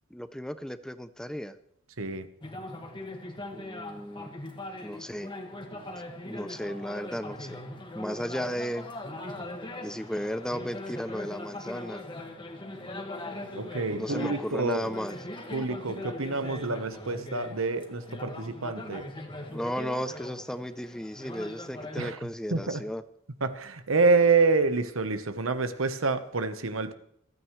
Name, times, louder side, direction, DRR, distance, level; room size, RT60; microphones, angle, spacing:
voice 1, 0.1-1.6 3.5-4.3 4.8-5.3 6.2-7.6 7.9-8.9 9.8-12.0 14.0-15.2 19.5-23.0, equal, 5° left, 0.5 m, -35 dB
sound 1, 2.4-22.1, left 1 dB, 25° left, 1.8 m, -40 dB
voice 2, 13.5-14.9 15.5-19.1 22.0-22.2 22.5-22.8 23.4-26.9, right 4 dB, 75° right, 1.1 m, -27 dB
28.0 x 9.4 x 3.2 m
head